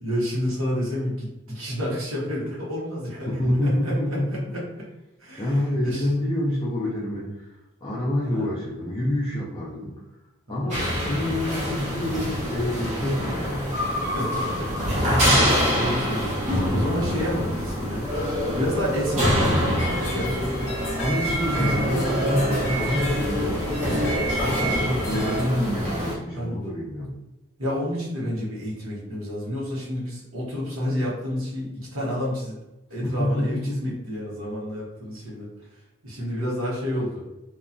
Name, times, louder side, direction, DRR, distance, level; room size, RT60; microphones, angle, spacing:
voice 1, 0.0-4.6 5.2-6.1 8.2-8.5 10.5-10.8 13.8-15.2 15.7-20.5 20.8-21.9 23.8-24.1 26.3-26.6 27.6-32.6 32.9-37.2, equal, 90° right, -6 dB, 0.9 m, -30 dB
voice 2, 3.3-4.4 5.4-7.5 7.8-9.9 10.5-13.8 15.1-15.5 21.0-24.2 24.6-27.1 33.0-33.9, left 1 dB, 20° left, -7 dB, 0.4 m, -27 dB
sound 1, 10.7-26.1, equal, 35° right, 0.8 m, -25 dB
sound 2, 19.8-25.4, right 2 dB, 55° left, 0.8 m, -31 dB
2.8 x 2.2 x 2.5 m, 0.98 s
head